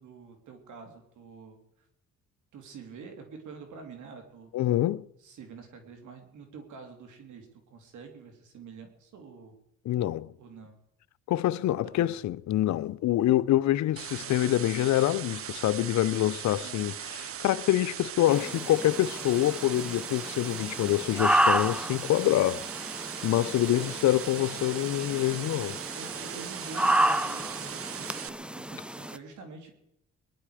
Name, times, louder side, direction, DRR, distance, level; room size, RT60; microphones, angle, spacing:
voice 1, 0.0-1.9 2.5-9.6 10.4-10.8 11.8-12.2 16.6-16.9 23.7-23.9 25.9-29.7, right 5 dB, 75° right, 3.0 m, -47 dB
voice 2, 4.5-5.0 9.9-10.3 11.3-16.9 17.2-22.7 23.2-25.8, left 14 dB, 65° left, 0.6 m, -26 dB
sound 1, 14.0-28.3, right 10 dB, 50° right, 0.7 m, -39 dB
sound 2, 18.3-29.2, right 1 dB, 5° right, 0.6 m, -31 dB
21.5 x 11.0 x 4.9 m
cardioid pair, 90°, 30 cm